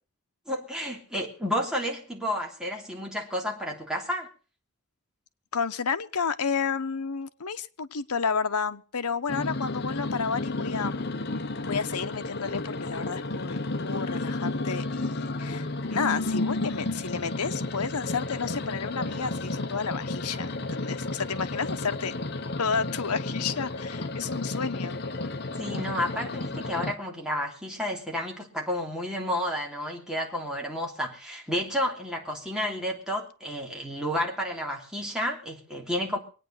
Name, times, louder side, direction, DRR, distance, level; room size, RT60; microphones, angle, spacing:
voice 1, 0.5-4.3 25.6-36.2, equal, 5° right, 3.1 m, -31 dB
voice 2, 5.5-11.1 11.6-22.2 22.6-25.0, left 5 dB, 90° left, 0.9 m, -31 dB
sound 1, 9.3-26.9, left 2 dB, 50° left, 1.2 m, -32 dB
23.5 x 9.3 x 5.6 m
head